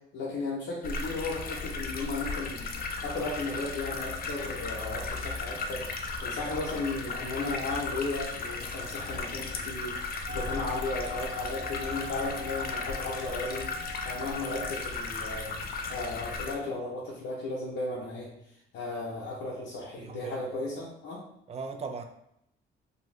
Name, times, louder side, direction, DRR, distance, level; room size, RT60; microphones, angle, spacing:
voice 1, 0.1-2.7 3.0-13.7 14.0-18.3 18.7-21.2, left 3 dB, 75° left, -6 dB, 0.7 m, -35 dB
sound 1, 0.8-16.5, left 4 dB, 50° left, 0.4 m, -36 dB
sound 2, 10.3-14.8, left 1 dB, 65° right, 0.7 m, -42 dB
voice 2, 20.0-20.6 21.5-22.0, right 4 dB, 30° right, 5 dB, 0.4 m, -38 dB
2.6 x 2.3 x 3.1 m, 0.77 s
cardioid pair, 90°, 20 cm